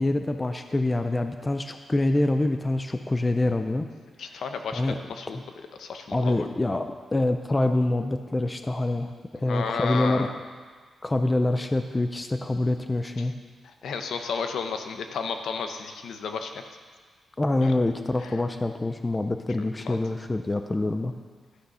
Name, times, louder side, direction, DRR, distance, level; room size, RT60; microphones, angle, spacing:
voice 1, 0.0-3.9 4.7-5.0 5.3-5.4 6.1-10.3 11.0-13.4 17.4-21.1, left 2 dB, 15° left, 7 dB, 0.4 m, -26 dB
voice 2, 4.2-5.4 5.8-6.5 9.5-10.3 13.2-13.3 13.8-16.6 17.6-17.7 18.2-18.3 19.8-20.0, left 5 dB, 70° left, 6 dB, 0.8 m, -32 dB
12.5 x 6.5 x 5.5 m, 1.5 s
wide cardioid pair, 175°, 0 cm